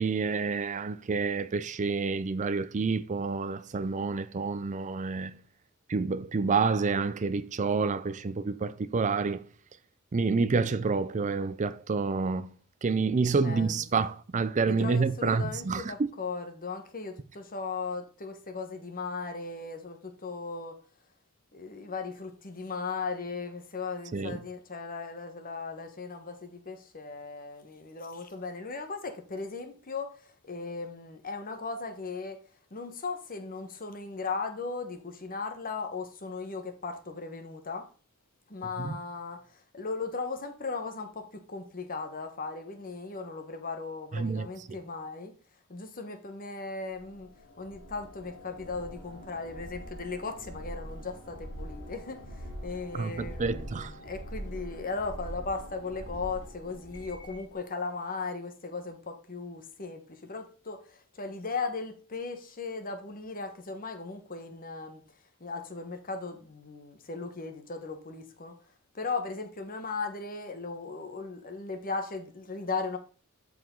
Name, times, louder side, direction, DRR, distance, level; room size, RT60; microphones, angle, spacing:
voice 1, 0.0-5.4 5.9-9.4 10.1-12.5 12.8-15.9 24.1-24.4 38.8-38.9 44.1-44.5 52.9-53.9, right 4 dB, 35° right, 0.4 m, -28 dB
voice 2, 13.4-13.8 14.7-20.8 21.5-32.4 32.7-37.8 38.5-45.3 45.7-47.3 47.6-53.7 54.0-65.0 65.4-68.5 68.9-73.0, left 4 dB, 40° left, 1.3 m, -37 dB
sound 1, 46.9-57.5, equal, 60° left, 3.1 m, -43 dB
12.5 x 4.9 x 3.8 m
head